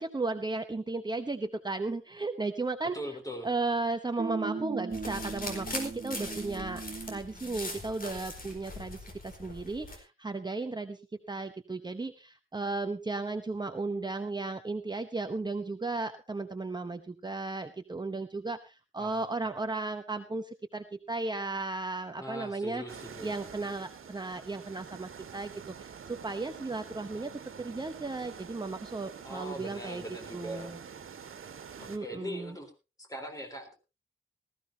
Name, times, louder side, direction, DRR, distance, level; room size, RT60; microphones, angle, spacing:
voice 1, 0.0-3.0 3.4-6.8 7.1-22.8 23.2-27.3 27.6-30.0 30.3-30.8 31.9-32.6, right 3 dB, 20° right, 7 dB, 0.8 m, -35 dB
voice 2, 2.9-3.5 19.0-19.3 22.2-23.3 29.2-30.7 31.8-32.7 33.0-33.7, equal, 15° left, 4 dB, 3.8 m, -41 dB
sound 1, 4.2-7.3, right 5 dB, 35° right, 1.4 m, -38 dB
sound 2, 4.9-10.0, left 2 dB, 45° left, 4.2 m, -41 dB
sound 3, 22.9-32.0, right 7 dB, 80° right, 1.6 m, -47 dB
19.0 x 14.5 x 2.8 m, 0.28 s
wide cardioid pair, 140°, 21 cm